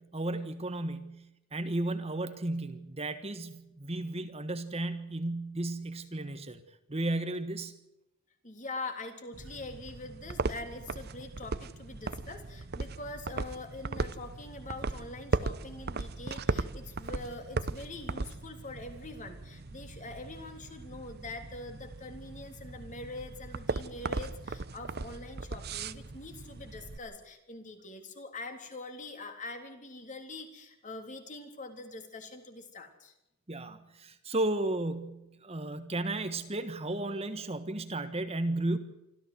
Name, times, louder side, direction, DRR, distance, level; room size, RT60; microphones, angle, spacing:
voice 1, 0.0-6.6 6.9-7.7 33.5-38.8, right 2 dB, 30° right, 9 dB, 1.4 m, -34 dB
voice 2, 8.4-33.1, left 2 dB, 35° left, 6 dB, 3.4 m, -44 dB
sound 1, 9.3-27.0, right 3 dB, 50° right, 0.9 m, -38 dB
25.5 x 14.5 x 8.0 m, 0.90 s
head